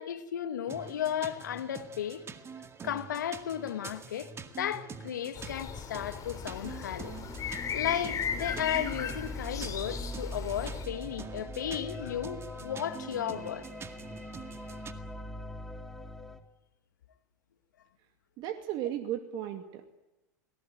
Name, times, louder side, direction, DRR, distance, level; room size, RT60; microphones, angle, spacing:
voice 1, 0.0-2.2 2.8-4.3 4.6-7.2 7.7-13.7, left 9 dB, 80° left, 1.9 m, -34 dB
sound 1, 0.7-14.9, right 6 dB, 25° right, 2.0 m, -46 dB
sound 2, 5.3-10.8, left 8 dB, 35° left, 4.2 m, -37 dB
sound 3, 7.3-16.4, equal, 5° left, 3.2 m, -43 dB
voice 2, 18.4-19.9, right 11 dB, 50° right, 2.3 m, -35 dB
28.5 x 19.0 x 9.4 m
hypercardioid pair, 90°, 10 cm